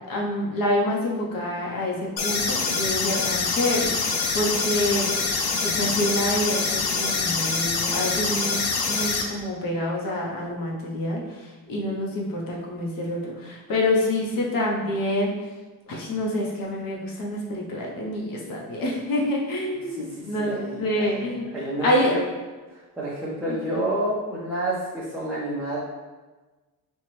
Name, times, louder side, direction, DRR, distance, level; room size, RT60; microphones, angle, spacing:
voice 1, 0.1-5.1 5.6-11.2 11.7-15.3 15.9-21.5 21.8-22.1 23.5-23.6, left 1 dB, 65° left, -2 dB, 1.0 m, -27 dB
sound 1, 2.2-9.2, left 4 dB, 85° left, 0.6 m, -25 dB
voice 2, 19.9-22.2 22.7-25.8, right 1 dB, 5° right, -9 dB, 0.7 m, -30 dB
4.3 x 2.4 x 3.2 m, 1.2 s
cardioid pair, 135°, 37 cm